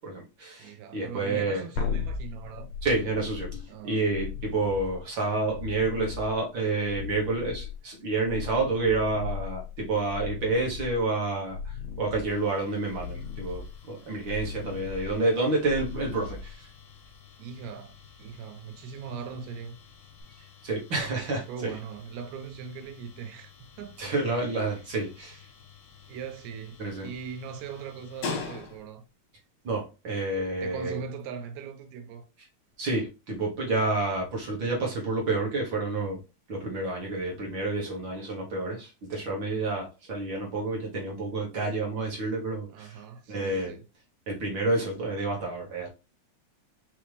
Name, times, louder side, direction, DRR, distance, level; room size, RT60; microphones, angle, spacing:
voice 1, 0.0-1.6 2.8-16.7 20.6-21.7 24.0-25.4 26.8-27.1 29.6-31.0 32.8-36.2 36.5-43.0 43.3-43.8 44.3-45.9, right 3 dB, 55° right, 1.4 m, -29 dB
voice 2, 0.6-2.7 3.7-4.1 17.4-17.9 18.2-19.8 21.5-23.5 23.8-24.8 26.1-29.0 30.6-32.3 42.7-43.9, right 6 dB, 80° right, 1.9 m, -40 dB
sound 1, 1.8-17.1 20.2-20.3, left 5 dB, 85° left, 1.2 m, -37 dB
sound 2, 12.2-29.1, left 5 dB, 65° left, 1.1 m, -46 dB
4.9 x 2.9 x 3.2 m
omnidirectional pair, 3.4 m